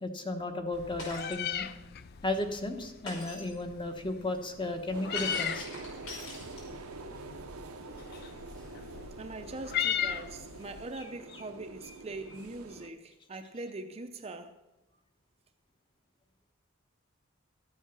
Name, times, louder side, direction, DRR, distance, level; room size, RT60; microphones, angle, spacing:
voice 1, 0.0-1.7 2.2-5.7, left 2 dB, 20° left, 6 dB, 1.1 m, -34 dB
Meow, 0.7-10.8, left 9 dB, 50° left, 0.4 m, -38 dB
Shatter, 1.0-1.4 3.1-3.5 5.2-6.9, left 2 dB, 80° left, 5.6 m, -42 dB
sound 1, 4.9-12.9, right 3 dB, 90° right, 0.7 m, -46 dB
voice 2, 9.2-14.5, right 2 dB, 30° right, 7 dB, 0.6 m, -42 dB
13.0 x 8.2 x 6.0 m, 1.0 s
head